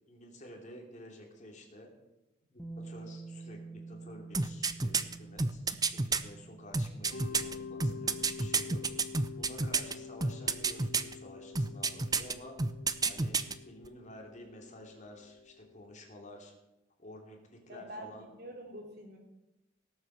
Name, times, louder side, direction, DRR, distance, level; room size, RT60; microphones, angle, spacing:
voice 1, 0.1-1.9 2.5-8.8 9.3-12.6 13.0-16.5 17.0-18.3, left 1 dB, 40° left, 1 dB, 2.9 m, -51 dB
Bass guitar, 2.6-8.8, right 3 dB, ahead, 1.6 m, -49 dB
sound 1, 4.3-6.2 6.7-9.9 10.2-11.1 11.6-12.3 12.6-13.5 13.8-13.9, right 4 dB, 20° right, 0.6 m, -29 dB
Mallet percussion, 7.1-15.9, left 5 dB, 85° left, 1.7 m, -47 dB
voice 2, 17.7-19.2, equal, 60° right, 1 dB, 3.4 m, -46 dB
18.0 x 7.8 x 6.6 m, 0.93 s
head